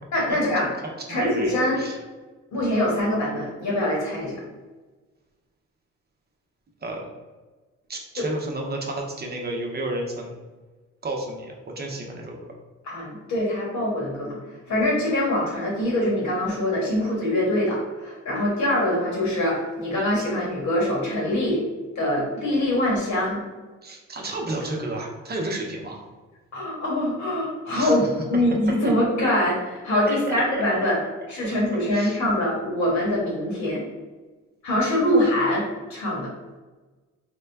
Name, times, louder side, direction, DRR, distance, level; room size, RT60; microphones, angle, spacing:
voice 1, 0.1-0.7 1.1-1.8 2.5-4.4 8.2-8.3 12.8-14.3 14.7-21.6 21.9-23.4 26.5-31.0 31.3-33.8 34.6-35.6 35.9-36.3, left 1 dB, 65° left, -4 dB, 1.5 m, -24 dB
voice 2, 0.8-2.0 6.8-7.1 7.9-10.3 11.0-12.5 23.8-26.1 27.7-28.1 30.1-30.6 31.7-32.2, right 2 dB, 35° right, 0 dB, 0.7 m, -32 dB
3.6 x 2.2 x 3.4 m, 1.3 s
cardioid pair, 90°, 30 cm